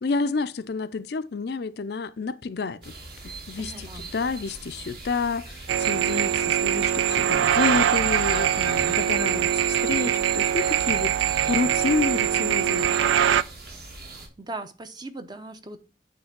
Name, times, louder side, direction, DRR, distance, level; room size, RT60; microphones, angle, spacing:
voice 1, 0.0-3.0 3.2-11.2 11.5-13.0, left 4 dB, 60° left, 0.4 m, -29 dB
birds and flies, 2.8-14.3, right 2 dB, 55° right, 2.0 m, -41 dB
voice 2, 3.6-4.1 14.1-15.8, right 2 dB, 25° right, 0.7 m, -39 dB
sound 1, 5.7-13.4, right 9 dB, 90° right, 0.4 m, -23 dB
8.8 x 3.3 x 5.8 m
head